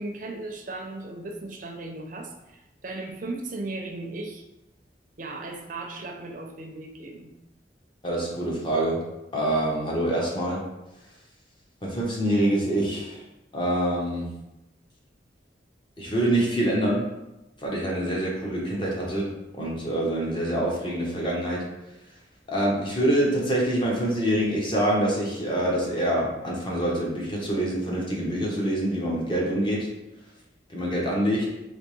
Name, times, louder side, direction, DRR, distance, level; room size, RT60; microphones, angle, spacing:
voice 1, 0.0-4.4 5.2-7.3, right 2 dB, 45° right, 2 dB, 0.5 m, -36 dB
voice 2, 8.0-9.0 9.3-10.6 11.8-13.2 13.5-14.3 16.0-17.1 17.6-19.3 19.6-21.6 22.5-29.9 30.7-31.5, right 1 dB, 25° left, -3 dB, 0.8 m, -25 dB
3.4 x 2.8 x 3.1 m, 0.96 s
head